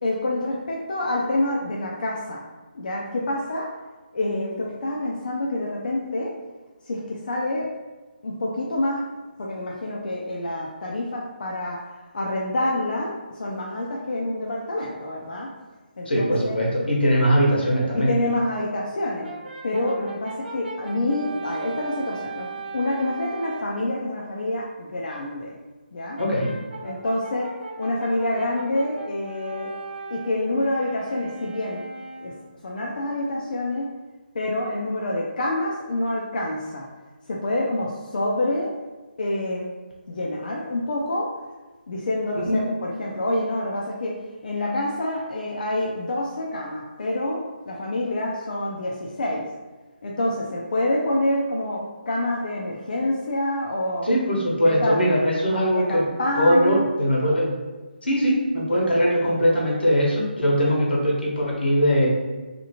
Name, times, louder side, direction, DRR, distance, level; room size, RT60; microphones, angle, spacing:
voice 1, 0.0-2.4 2.7-3.7 4.1-6.3 6.9-7.7 8.2-9.0 9.4-11.8 12.1-15.5 16.0-16.5 18.0-19.3 19.6-22.5 22.7-25.6 25.9-26.2 26.8-27.5 27.8-29.7 30.1-31.8 32.2-32.3 32.6-33.9 34.3-36.9 37.3-38.7 39.2-39.7 40.1-41.3 41.9-47.4 47.7-49.5 50.0-54.1 54.6-55.0 55.7-56.9, left 1 dB, 55° left, -3 dB, 0.4 m, -27 dB
voice 2, 16.1-18.1 26.2-26.5 42.5-42.7 54.0-56.1 56.4-57.6 58.0-62.1, equal, 85° left, -4 dB, 1.1 m, -21 dB
Brass instrument, 19.2-23.8 26.1-32.5, right 4 dB, 80° right, 0.9 m, -38 dB
2.8 x 2.5 x 2.7 m, 1.2 s
hypercardioid pair, 170°, 6 cm